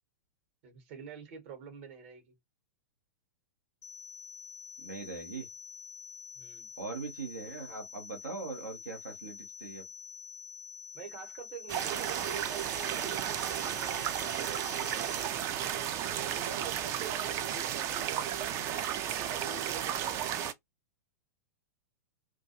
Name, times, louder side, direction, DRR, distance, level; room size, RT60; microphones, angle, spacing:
voice 1, 0.6-2.3 6.3-6.7 10.9-15.6 16.2-19.0 19.3-20.3, right 6 dB, 45° right, 1.0 m, -47 dB
sound 1, 3.8-15.2, left 6 dB, 65° left, 0.4 m, -47 dB
voice 2, 4.8-5.5 6.8-9.8, right 4 dB, 75° right, 0.7 m, -41 dB
sound 2, 11.7-20.5, right 10 dB, 30° right, 0.4 m, -33 dB
2.3 x 2.2 x 2.7 m
figure-of-eight pair, 100°, 9 cm